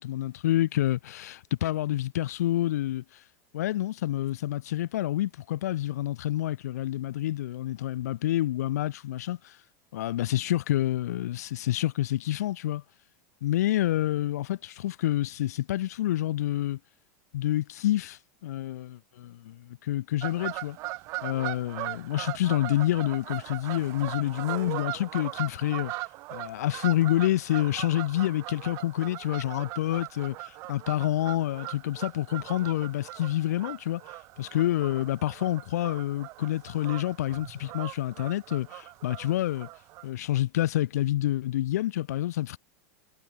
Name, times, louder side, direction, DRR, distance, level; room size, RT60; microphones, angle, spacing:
voice 1, 0.0-3.0 3.5-9.6 9.9-12.8 13.4-16.8 17.3-20.8 21.2-25.9 26.3-34.0 34.4-39.7 40.0-42.6, left 14 dB, 75° left, 6.0 m, -28 dB
Fowl / Bird vocalization bird call bird song, 20.2-40.1, right 22 dB, 35° right, 4.3 m, -39 dB
supercardioid pair, 175°, 9 cm